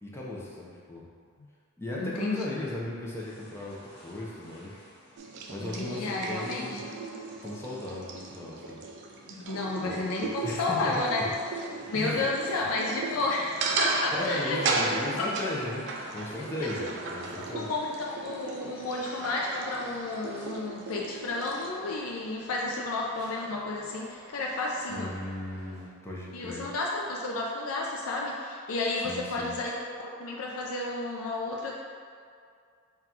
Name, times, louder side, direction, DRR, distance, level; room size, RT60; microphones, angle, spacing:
voice 1, 0.0-1.0 1.8-4.8 5.5-6.8 7.4-8.8 9.8-10.9 11.9-12.6 14.1-15.8 16.1-17.7 24.9-26.7 29.0-29.6, left 1 dB, 10° left, -5 dB, 0.6 m, -36 dB
voice 2, 2.0-2.5 5.6-6.8 9.3-11.2 11.9-14.8 15.2-15.3 16.6-16.7 17.4-25.1 26.3-29.7 30.0-31.8, left 2 dB, 80° left, -2 dB, 0.4 m, -31 dB
sound 1, 3.1-20.6, equal, 45° left, 1.2 m, -53 dB
sound 2, 5.2-21.7, right 3 dB, 55° right, 0.4 m, -36 dB
sound 3, 9.4-25.9, equal, 25° right, 1.4 m, -52 dB
3.8 x 2.3 x 4.3 m, 2.2 s
head